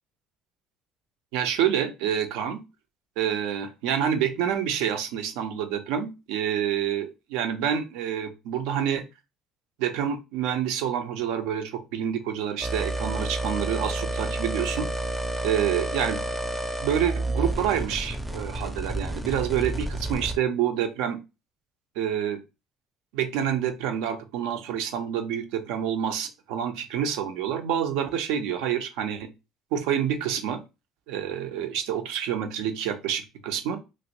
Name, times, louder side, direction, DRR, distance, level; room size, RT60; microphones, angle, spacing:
voice 1, 1.3-2.6 3.2-9.0 9.8-14.9 15.4-16.2 16.8-21.2 22.0-22.4 23.1-29.3 29.7-30.6 31.1-33.8, right 9 dB, 85° right, 7 dB, 0.6 m, -27 dB
sound 1, 12.6-20.4, right 2 dB, 5° right, 0.5 m, -30 dB
2.9 x 2.6 x 2.9 m, 0.27 s
cardioid pair, 110°, 0 cm